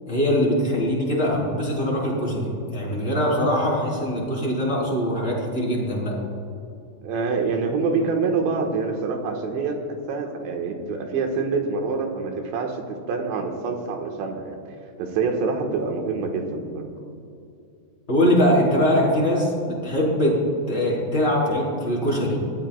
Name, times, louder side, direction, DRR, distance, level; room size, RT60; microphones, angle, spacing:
voice 1, 0.1-6.1 18.1-20.4 20.7-22.4, equal, 15° left, -5 dB, 3.8 m, -22 dB
voice 2, 7.0-9.8 10.1-14.6 15.0-16.9, right 4 dB, 70° right, 2 dB, 3.4 m, -26 dB
24.0 x 17.0 x 2.4 m, 2.6 s
omnidirectional pair, 5.8 m